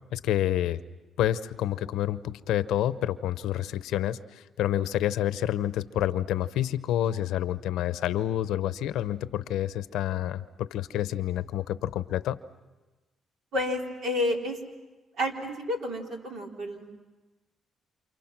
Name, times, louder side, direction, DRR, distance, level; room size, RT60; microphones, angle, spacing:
voice 1, 0.1-0.8 1.2-12.4, left 12 dB, 85° left, 14 dB, 0.8 m, -28 dB
voice 2, 13.5-14.6 15.2-16.9, left 1 dB, 75° right, 1 dB, 3.9 m, -30 dB
28.5 x 28.0 x 6.0 m, 1.2 s
cardioid pair, 90°, 0 cm